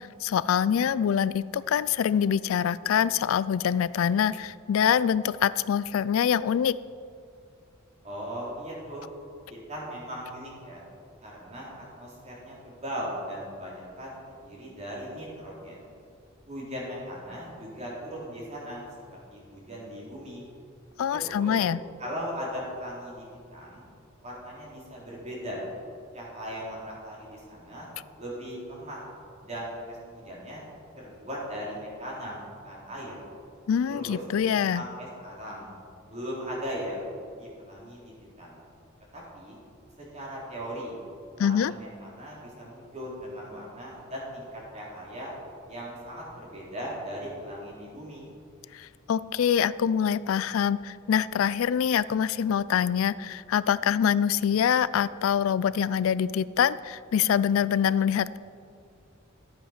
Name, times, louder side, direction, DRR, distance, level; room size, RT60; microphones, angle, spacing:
voice 1, 0.0-6.8 21.0-21.8 33.7-34.8 41.4-41.7 48.7-58.4, left 8 dB, 85° left, 18 dB, 0.3 m, -25 dB
voice 2, 8.0-9.0 9.5-10.8 11.2-15.9 16.5-18.8 19.3-20.5 21.1-21.5 22.0-23.8 24.2-25.6 26.1-27.9 28.2-29.0 29.4-30.6 31.0-33.1 33.9-34.2 34.7-35.7 36.0-38.6 39.1-39.6 40.0-41.0 41.3-45.3 45.7-48.3, equal, 35° right, -5 dB, 3.6 m, -38 dB
12.5 x 8.7 x 5.8 m, 2.3 s
head